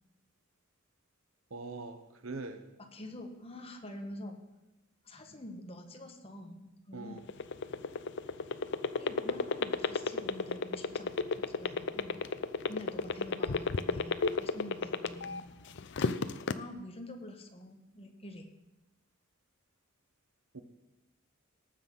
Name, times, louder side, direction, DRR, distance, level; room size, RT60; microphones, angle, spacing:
voice 1, 1.5-2.6 6.9-7.2 20.5-20.6, right 3 dB, 75° right, 9 dB, 1.0 m, -42 dB
voice 2, 2.9-4.4 5.0-7.2 9.0-12.2 12.7-15.4 16.5-18.5, left 1 dB, 30° left, 4 dB, 1.5 m, -46 dB
sound 1, 7.2-15.4 15.8-16.5, left 4 dB, 60° left, 0.6 m, -30 dB
18.5 x 7.4 x 5.5 m, 1.0 s
head